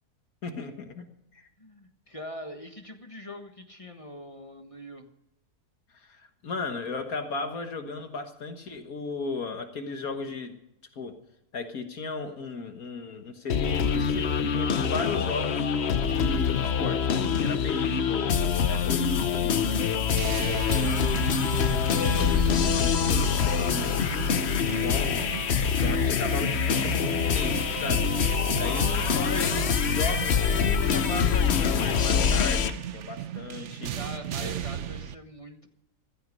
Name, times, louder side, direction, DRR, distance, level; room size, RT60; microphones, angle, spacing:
voice 1, 0.4-1.1 1.3-1.5 5.9-10.6 11.0-11.1 11.5-15.7 16.0-18.3 18.7-19.9 20.2-21.1 21.9-25.3 25.8-28.1 28.6-33.9 34.4-34.5, left 4 dB, 65° left, 6 dB, 1.9 m, -36 dB
voice 2, 1.6-5.1 33.9-35.7, equal, 20° left, 5 dB, 1.4 m, -43 dB
Zero Logic, 13.5-32.7, left 7 dB, 50° left, 1.0 m, -25 dB
sound 1, 20.2-35.2, right 10 dB, 60° right, 0.9 m, -36 dB
15.5 x 14.0 x 5.3 m, 0.81 s
omnidirectional pair, 1.7 m